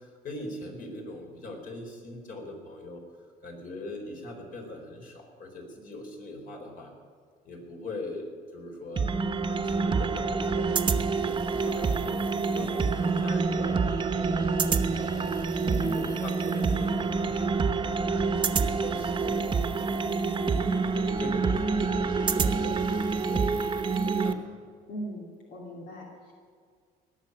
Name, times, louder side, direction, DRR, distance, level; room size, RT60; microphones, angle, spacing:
voice 1, 0.0-3.0 3.4-6.9 7.4-9.1 9.5-15.1 15.5-23.5 23.9-24.6, left 1 dB, 55° left, 2 dB, 4.3 m, -41 dB
sound 1, 9.0-24.3, right 4 dB, 30° right, 1.0 m, -27 dB
voice 2, 15.7-16.1 24.9-26.3, equal, 85° left, -2 dB, 2.7 m, -39 dB
19.0 x 7.5 x 9.6 m, 2.1 s
cardioid pair, 110°, 17 cm